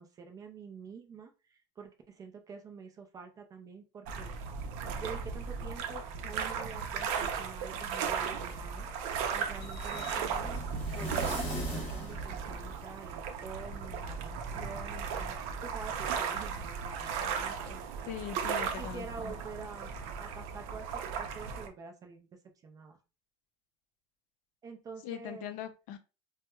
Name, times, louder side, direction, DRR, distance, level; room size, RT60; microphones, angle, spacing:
voice 1, 0.0-4.3 5.0-8.9 9.3-10.5 10.9-18.1 18.6-19.9 20.2-22.3 22.6-23.0 24.6-25.5, right 5 dB, 20° right, 4 dB, 0.4 m, -47 dB
sound 1, 4.1-21.7, right 6 dB, 60° right, 0.6 m, -36 dB
sound 2, 8.4-13.2, right 1 dB, 30° left, 1.0 m, -40 dB
voice 2, 18.0-19.3 25.0-26.0, left 10 dB, 45° left, 9 dB, 0.4 m, -41 dB
4.4 x 2.1 x 2.2 m, 0.31 s
cardioid pair, 175°, 18 cm